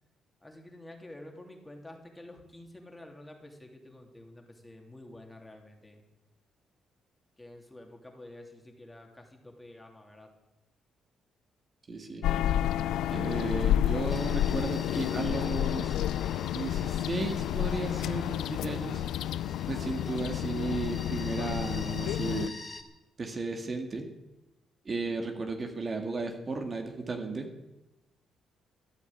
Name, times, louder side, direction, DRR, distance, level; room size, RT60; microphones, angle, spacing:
voice 1, 0.4-6.0 7.4-10.3, left 1 dB, 10° left, 2 dB, 3.1 m, -49 dB
voice 2, 11.9-12.2 13.1-16.0 16.5-19.0 19.7-22.5 23.2-24.1 24.9-27.5, right 3 dB, 35° right, 3 dB, 2.1 m, -34 dB
sound 1, 12.2-22.5, left 12 dB, 85° left, 0.5 m, -30 dB
sound 2, 14.1-22.8, left 3 dB, 30° left, 2.3 m, -47 dB
14.5 x 10.0 x 8.8 m, 0.99 s
cardioid pair, 90°, 0 cm